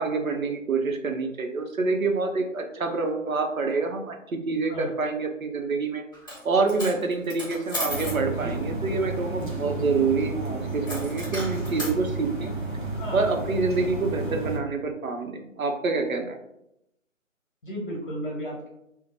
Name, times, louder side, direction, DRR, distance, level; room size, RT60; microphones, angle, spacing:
voice 1, 0.0-12.5 13.1-16.4, right 4 dB, 80° right, 4 dB, 0.7 m, -27 dB
Coin (dropping), 6.1-6.4 6.7-8.2 10.9-12.0, left 1 dB, 15° left, 1.0 m, -34 dB
sound 1, 7.9-14.6, right 2 dB, 40° right, 0.7 m, -32 dB
voice 2, 17.6-18.7, equal, 40° left, -3 dB, 1.1 m, -34 dB
2.6 x 2.0 x 3.1 m, 0.84 s
figure-of-eight pair, 160°, 41 cm